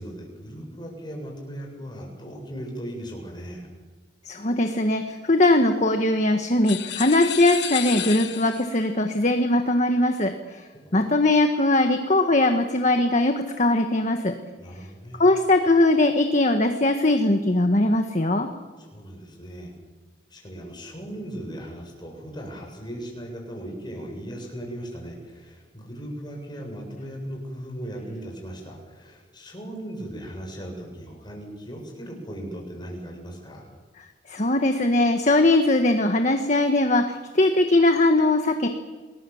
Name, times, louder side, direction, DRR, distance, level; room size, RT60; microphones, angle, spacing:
voice 1, 0.0-3.7 10.8-11.0 14.6-15.2 18.8-19.7 20.3-33.7, right 1 dB, 25° left, 0 dB, 7.9 m, -38 dB
voice 2, 4.3-10.6 10.9-14.3 15.2-18.5 34.3-38.7, left 2 dB, 40° left, 5 dB, 1.6 m, -20 dB
sound 1, 6.6-8.8, left 12 dB, 70° left, 1.2 m, -32 dB
29.0 x 21.0 x 7.3 m, 1.3 s
head